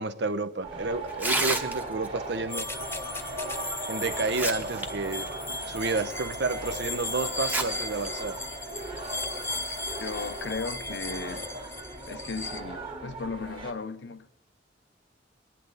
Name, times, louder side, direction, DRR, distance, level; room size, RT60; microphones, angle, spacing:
voice 1, 0.0-2.7 3.9-5.3 5.7-8.4, right 3 dB, 70° right, 0.7 m, -30 dB
sound 1, 0.6-13.7, right 2 dB, 30° right, 1.6 m, -38 dB
Tearing, 1.1-2.1 3.5-3.6 4.1-4.9 5.2-5.3 6.0-6.1 7.3-7.6 8.0-8.1 9.0-9.2, right 2 dB, 10° right, 0.9 m, -29 dB
sound 2, 2.5-12.6, left 2 dB, 15° left, 0.6 m, -37 dB
voice 2, 10.0-11.5 12.1-14.3, left 4 dB, 80° left, 0.8 m, -36 dB
21.5 x 10.0 x 4.0 m
head